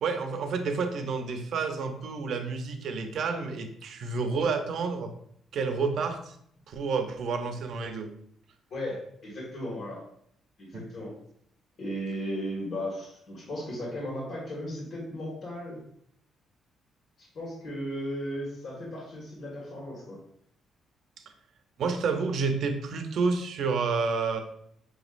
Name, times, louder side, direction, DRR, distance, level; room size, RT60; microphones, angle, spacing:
voice 1, 0.0-5.1 5.5-6.4 6.7-8.1 10.7-10.8 21.8-24.4, right 4 dB, 70° right, 6 dB, 0.6 m, -29 dB
voice 2, 8.7-10.0 10.6-11.1 11.8-15.8 17.2-20.2, equal, 65° left, -4 dB, 1.8 m, -36 dB
6.1 x 3.0 x 2.5 m, 0.68 s
cardioid pair, 90°, 0 cm